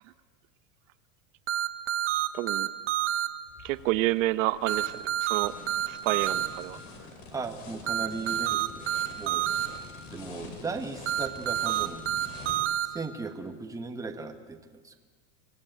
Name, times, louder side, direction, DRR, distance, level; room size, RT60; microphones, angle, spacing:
sound 1, 1.5-3.3 4.7-6.5 7.9-9.7 11.1-12.9, right 12 dB, 30° right, 1.3 m, -28 dB
voice 1, 2.3-2.7 3.6-5.5 5.9-6.8, right 17 dB, 75° right, 12 dB, 1.0 m, -29 dB
sound 2, 3.5-12.6, left 3 dB, 70° left, 5.6 m, -46 dB
voice 2, 7.3-8.9 9.2-9.5 10.1-12.1 12.9-14.6 14.8-15.0, right 4 dB, 10° right, 5 dB, 1.3 m, -37 dB
25.0 x 17.0 x 9.1 m, 1.5 s
supercardioid pair, 155°, 40 cm